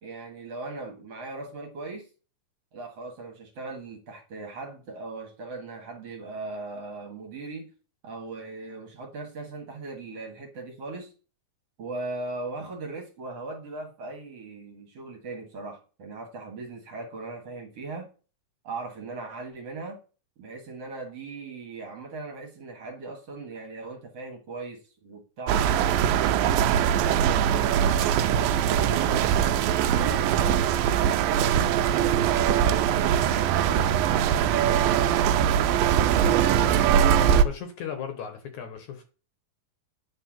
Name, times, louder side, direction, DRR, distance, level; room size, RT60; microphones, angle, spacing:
voice 1, 0.0-2.1 2.7-7.7 8.0-11.1 11.8-18.1 18.6-20.0 20.4-25.7 26.2-29.4 29.7-30.7 31.0-35.3 36.0-36.8, right 3 dB, 50° right, 2.3 m, -39 dB
sound 1, 25.5-37.4, right 9 dB, 85° right, 2.4 m, -22 dB
voice 2, 36.1-36.4 37.2-39.0, left 7 dB, 65° left, 2.4 m, -36 dB
9.8 x 4.5 x 7.4 m
omnidirectional pair, 4.1 m